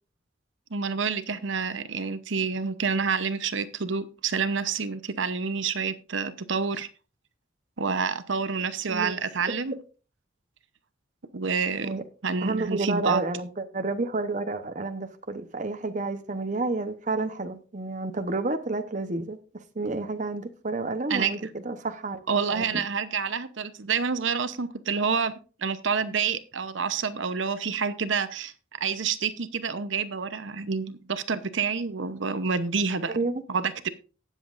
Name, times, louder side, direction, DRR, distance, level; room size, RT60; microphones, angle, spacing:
voice 1, 0.7-6.9 7.8-9.7 11.3-13.2 21.1-21.3 22.3-25.3 25.6-28.5 28.8-33.2 33.5-33.9, right 5 dB, 70° right, 0.8 m, -28 dB
voice 2, 12.4-22.2 22.5-22.8 33.1-33.4, right 3 dB, 40° right, 0.9 m, -30 dB
18.5 x 7.3 x 2.5 m
head